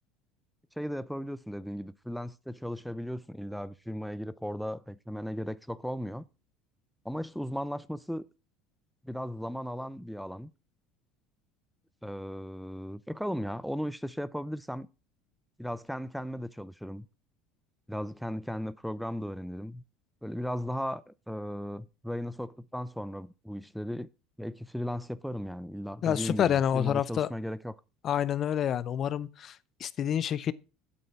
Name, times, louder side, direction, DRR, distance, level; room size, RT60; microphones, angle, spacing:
voice 1, 0.8-6.3 7.0-8.3 9.0-10.5 12.0-14.9 15.6-17.1 17.9-19.8 20.2-24.1 24.4-27.7, equal, ahead, 0.5 m, -36 dB
voice 2, 26.0-27.3 28.0-30.5, left 9 dB, 45° left, 0.6 m, -28 dB
8.4 x 7.4 x 5.9 m
supercardioid pair, 100°, 0 cm